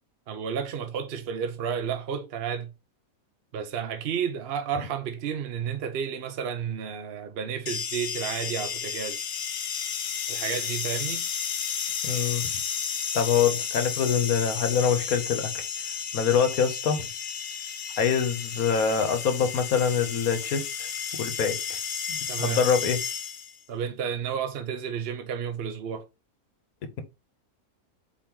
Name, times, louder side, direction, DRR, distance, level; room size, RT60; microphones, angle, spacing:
voice 1, 0.3-2.7 3.5-9.2 10.3-11.2 22.3-22.6 23.7-26.0, right 7 dB, 50° right, 0.8 m, -31 dB
sound 1, 7.7-23.6, left 7 dB, 60° left, 0.5 m, -32 dB
voice 2, 12.0-12.5 13.1-15.6 16.1-17.1 18.0-20.9 21.2-21.8 22.1-23.0, left 7 dB, 80° left, 1.4 m, -25 dB
4.5 x 3.0 x 3.5 m
omnidirectional pair, 1.5 m